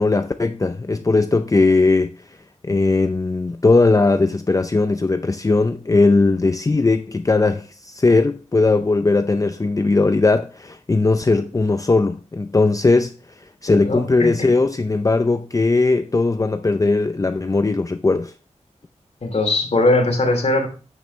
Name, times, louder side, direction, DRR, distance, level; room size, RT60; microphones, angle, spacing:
voice 1, 0.0-2.1 2.6-13.1 13.6-18.3, left 3 dB, 25° left, 0.6 m, -18 dB
voice 2, 13.7-14.5 19.2-20.7, left 2 dB, 60° left, 2.9 m, -20 dB
9.5 x 8.2 x 3.2 m
wide cardioid pair, 90°, 13 cm